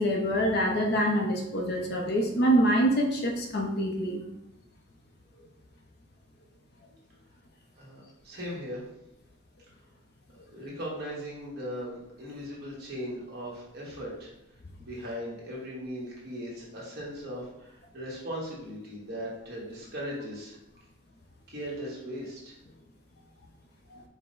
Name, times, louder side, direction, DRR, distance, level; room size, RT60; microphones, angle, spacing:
voice 1, 0.0-4.2, right 1 dB, 50° left, 1 dB, 0.5 m, -25 dB
voice 2, 7.8-8.8 10.5-14.3 14.8-20.6 21.5-22.6, equal, 50° right, -5 dB, 1.3 m, -38 dB
4.8 x 2.1 x 3.8 m, 0.85 s
head